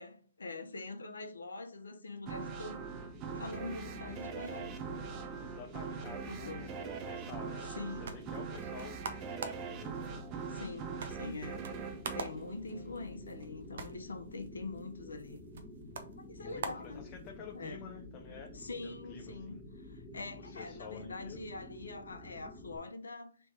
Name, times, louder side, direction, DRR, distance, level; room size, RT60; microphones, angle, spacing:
voice 1, 0.0-2.8 3.3-4.7 6.1-6.7 7.7-8.2 10.5-11.6 12.1-15.4 16.2-17.1 17.5-17.8 18.5-23.5, left 3 dB, 90° left, 0.7 m, -44 dB
sound 1, 2.3-13.4, right 6 dB, 30° right, 0.6 m, -42 dB
sound 2, 2.8-22.8, left 1 dB, 5° left, 1.2 m, -50 dB
voice 2, 5.4-10.0 16.4-18.5 18.8-19.6 20.4-21.4, left 7 dB, 30° left, 0.5 m, -50 dB
sound 3, 7.7-17.6, right 4 dB, 65° right, 0.7 m, -47 dB
3.4 x 3.1 x 4.2 m
hypercardioid pair, 135°, 0 cm